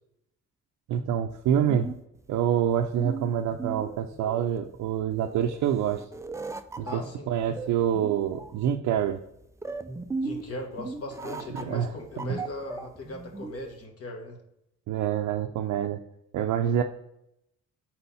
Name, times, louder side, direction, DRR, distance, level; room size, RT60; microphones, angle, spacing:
voice 1, 0.9-1.9 2.3-6.0 6.8-7.0 7.3-9.2 11.5-11.9 14.9-16.0 16.3-16.8, right 9 dB, 75° right, 3 dB, 0.5 m, -26 dB
sound 1, 1.3-13.8, right 4 dB, 10° right, 0.3 m, -38 dB
voice 2, 6.8-7.3 10.2-14.4, left 2 dB, 50° left, 2 dB, 1.5 m, -38 dB
4.4 x 4.1 x 5.4 m, 0.81 s
cardioid pair, 90°, 30 cm